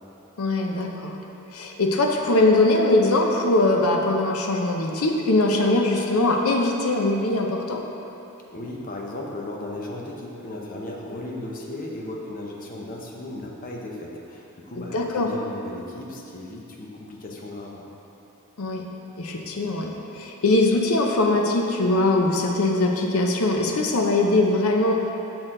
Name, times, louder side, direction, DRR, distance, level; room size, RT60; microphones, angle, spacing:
voice 1, 0.4-1.2 1.5-7.9 14.8-15.3 18.6-18.8 19.2-25.1, left 2 dB, 75° left, 2 dB, 0.7 m, -21 dB
voice 2, 8.5-17.9, left 1 dB, 40° left, -1 dB, 0.8 m, -36 dB
6.3 x 6.1 x 3.8 m, 3.0 s
head